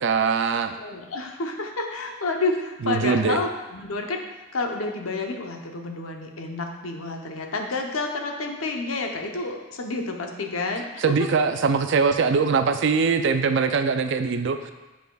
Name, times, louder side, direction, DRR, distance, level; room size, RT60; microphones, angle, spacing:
voice 1, 0.0-0.8 2.8-3.4 11.0-14.7, right 5 dB, 60° right, 8 dB, 0.4 m, -22 dB
voice 2, 0.8-4.2 4.5-11.0, left 3 dB, 85° left, 3 dB, 0.8 m, -29 dB
9.1 x 4.9 x 2.3 m, 1.1 s
head